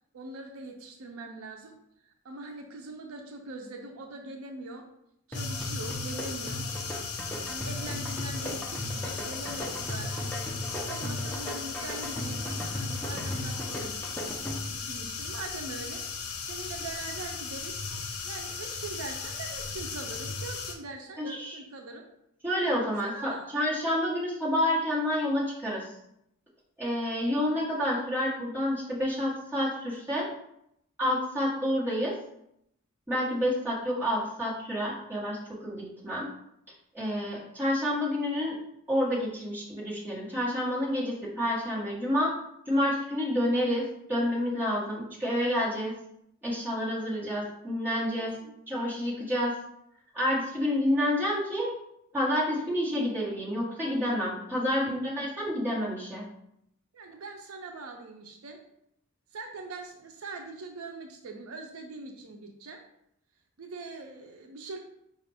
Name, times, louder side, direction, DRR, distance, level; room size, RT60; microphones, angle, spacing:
voice 1, 0.1-1.8 2.0-4.9 5.3-6.7 7.4-10.3 10.7-14.3 14.7-16.0 16.4-17.8 18.2-22.1 23.0-23.5 47.4-47.5 48.1-48.5 54.7-54.8 56.9-58.6 59.3-62.8 63.6-64.8, right 3 dB, 70° right, 3 dB, 0.5 m, -42 dB
sound 1, 5.3-20.7, left 5 dB, 75° left, 0.6 m, -37 dB
sound 2, 5.3-14.9, left 1 dB, 10° left, 0.5 m, -37 dB
voice 2, 21.2-21.6 22.4-25.9 26.8-30.3 31.0-32.2 33.1-35.4 35.6-36.3 36.9-38.5 38.9-42.3 42.7-45.9 46.4-48.3 48.7-49.5 50.1-51.7 52.1-56.2, left 1 dB, 10° right, -8 dB, 1.4 m, -29 dB
4.9 x 2.4 x 3.4 m, 0.77 s
head